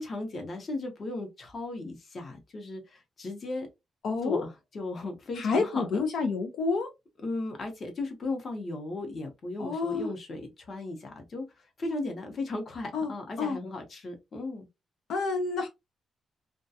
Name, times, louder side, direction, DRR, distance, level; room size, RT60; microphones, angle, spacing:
voice 1, 0.0-3.7 4.2-6.0 7.2-11.5 11.8-14.7, left 2 dB, 40° left, 0.7 m, -36 dB
voice 2, 4.0-4.4 5.4-6.9 9.6-10.1 12.9-13.1 13.4-13.6 15.1-15.7, left 4 dB, 75° left, 0.5 m, -28 dB
2.3 x 2.2 x 2.6 m
cardioid pair, 140°, 0 cm